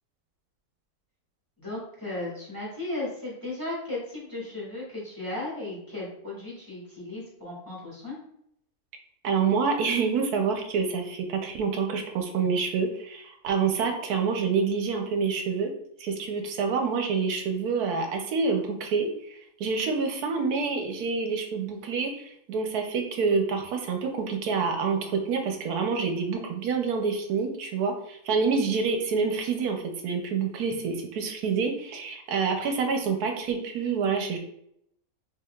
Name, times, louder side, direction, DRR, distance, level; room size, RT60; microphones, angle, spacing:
voice 1, 1.6-8.1, left 2 dB, 15° left, -7 dB, 1.4 m, -35 dB
voice 2, 9.2-15.7 16.0-34.4, right 5 dB, 80° right, 4 dB, 1.2 m, -27 dB
5.6 x 2.8 x 2.3 m, 0.73 s
omnidirectional pair, 1.6 m